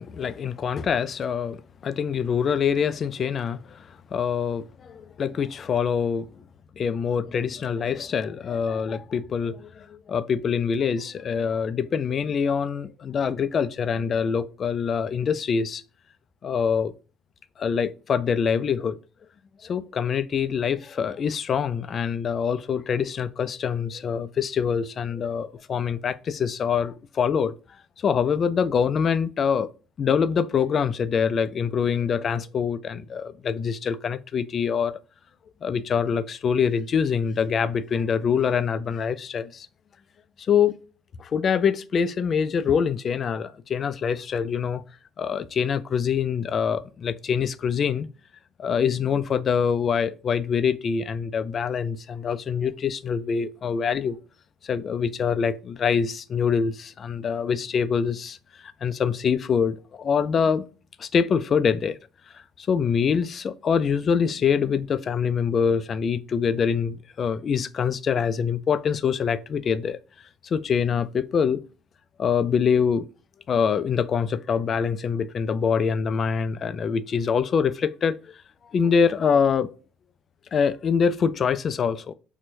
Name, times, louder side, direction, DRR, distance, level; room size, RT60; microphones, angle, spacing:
voice 1, 0.0-1.6 1.8-6.3 6.8-15.8 16.4-16.9 17.6-19.0 19.6-27.5 28.0-29.7 30.0-35.0 35.6-39.7 40.4-40.7 41.2-44.8 45.2-48.1 48.6-54.2 54.6-58.4 58.6-60.7 61.0-62.0 62.3-70.0 70.4-71.6 72.2-73.1 73.5-78.2 78.7-79.7 80.5-82.1, left 6 dB, 45° left, 0.3 m, -25 dB
4.4 x 2.1 x 2.6 m
supercardioid pair, 95°, 0 cm